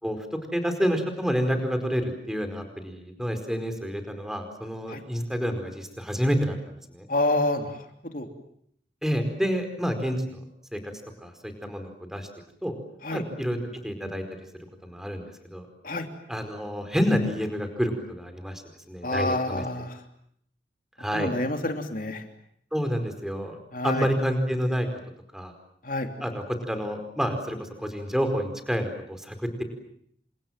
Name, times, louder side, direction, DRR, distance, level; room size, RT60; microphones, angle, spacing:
voice 1, 0.0-7.1 9.0-10.4 10.7-10.8 11.2-12.3 12.6-12.7 13.1-13.6 13.8-14.2 14.8-15.2 15.5-15.7 16.3-18.6 18.9-19.6 21.0-21.3 22.7-23.6 23.8-24.9 25.3-25.5 26.2-29.6, equal, 5° right, 7 dB, 4.7 m, -28 dB
voice 2, 7.1-7.8 8.1-8.3 13.0-13.2 15.8-16.1 19.0-20.0 21.1-22.2 23.7-24.1 25.8-26.1, left 2 dB, 50° left, 5 dB, 3.1 m, -27 dB
29.5 x 26.5 x 7.5 m, 0.69 s
head